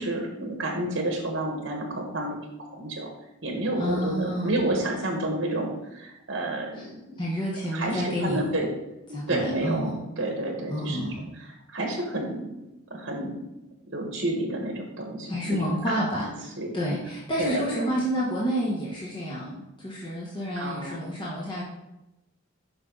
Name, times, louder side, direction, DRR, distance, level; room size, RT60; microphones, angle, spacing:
voice 1, 0.0-2.4 2.7-3.1 3.4-6.8 7.7-8.7 9.3-12.4 12.9-13.4 13.9-16.7 17.4-17.9 20.6-21.1, right 1 dB, 60° right, 1 dB, 1.4 m, -30 dB
voice 2, 3.8-4.6 7.2-8.4 9.1-10.0 10.7-11.2 15.2-16.5 16.7-21.6, equal, 20° left, -5 dB, 1.2 m, -29 dB
7.7 x 5.5 x 3.9 m, 0.92 s
head